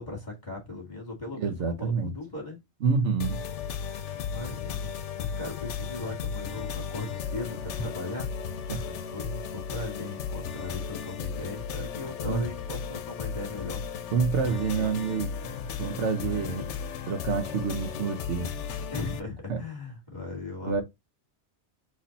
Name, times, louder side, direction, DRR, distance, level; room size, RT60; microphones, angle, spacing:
voice 1, 0.0-2.6 4.1-4.9 5.2-8.3 8.8-13.8 14.4-14.9 16.1-16.8 18.9-20.8, left 2 dB, 40° left, 2.1 m, -38 dB
voice 2, 1.3-2.1 2.8-3.4 8.7-8.8 12.3-12.4 14.1-15.3 15.8-16.6 17.1-18.5 19.5-19.6 20.6-20.8, right 5 dB, 80° right, 1.2 m, -27 dB
sound 1, 3.2-19.2, left 6 dB, 85° left, 0.9 m, -35 dB
4.1 x 3.2 x 4.0 m
omnidirectional pair, 1.2 m